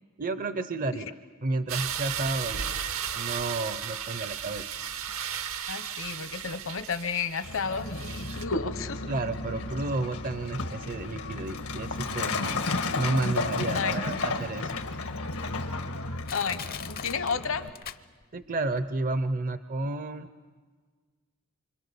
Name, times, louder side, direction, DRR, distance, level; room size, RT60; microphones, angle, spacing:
voice 1, 0.2-1.1 1.4-2.8 3.1-4.7 9.1-12.6 13.0-14.8 18.3-20.3, right 2 dB, 40° right, 11 dB, 0.7 m, -31 dB
sound 1, 1.7-8.4, right 8 dB, 70° right, 1.0 m, -35 dB
voice 2, 5.7-9.1 9.5-9.6 13.7-14.0 16.3-17.6, left 5 dB, 65° left, 10 dB, 1.1 m, -32 dB
Truck, 7.4-17.7, left 3 dB, 90° left, 1.7 m, -33 dB
Crushing, 16.3-18.5 18.8-18.9, left 8 dB, 45° left, 0.7 m, -40 dB
27.0 x 25.0 x 7.0 m, 1.5 s
head